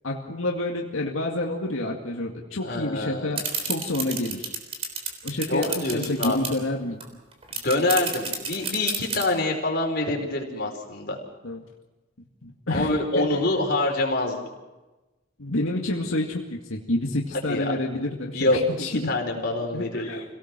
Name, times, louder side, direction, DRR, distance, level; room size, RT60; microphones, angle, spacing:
voice 1, 0.0-4.6 5.2-7.0 11.4-11.6 12.4-13.7 15.4-19.1 19.7-20.2, left 1 dB, 90° left, 0 dB, 2.2 m, -29 dB
voice 2, 2.6-3.3 5.5-6.4 7.6-11.2 12.7-14.4 17.5-17.7 18.3-18.6 18.9-20.1, left 2 dB, 50° left, 1 dB, 4.7 m, -25 dB
sound 1, 3.4-6.6 7.0-7.1 7.3-9.2, right 5 dB, 30° right, 3.6 m, -29 dB
28.0 x 18.0 x 6.2 m, 1.1 s
head